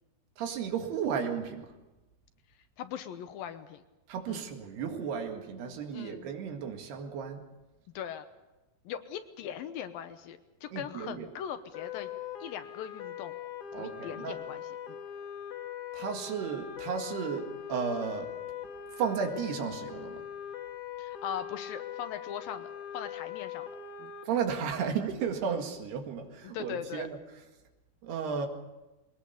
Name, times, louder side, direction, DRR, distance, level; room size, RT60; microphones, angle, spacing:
voice 1, 0.4-1.7 4.1-7.4 10.7-11.3 13.7-14.4 15.9-18.3 19.0-20.2 24.3-27.2 28.0-28.5, right 6 dB, 85° right, 4 dB, 4.0 m, -34 dB
voice 2, 2.8-3.8 4.3-4.5 5.9-6.3 7.9-8.3 8.8-12.1 12.4-13.4 13.8-15.0 21.0-23.7 24.0-24.1 26.4-27.1, left 9 dB, 75° left, 10 dB, 2.5 m, -40 dB
sound 1, 11.7-24.2, left 9 dB, 60° left, 2.7 m, -41 dB
22.0 x 20.0 x 6.9 m, 1.1 s
omnidirectional pair, 4.6 m